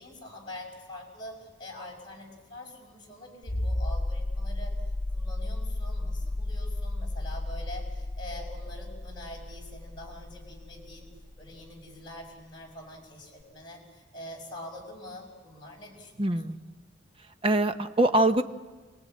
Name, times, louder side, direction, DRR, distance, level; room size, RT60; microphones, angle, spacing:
voice 1, 0.0-4.7 5.1-11.1 11.4-16.4, left 1 dB, 25° left, -2 dB, 5.5 m, -45 dB
sound 1, 3.4-11.9 13.4-13.5, left 1 dB, 80° left, 0.9 m, -33 dB
voice 2, 16.2-16.6 17.4-18.4, right 1 dB, 30° right, 8 dB, 1.0 m, -23 dB
28.0 x 19.0 x 8.7 m, 1.3 s
head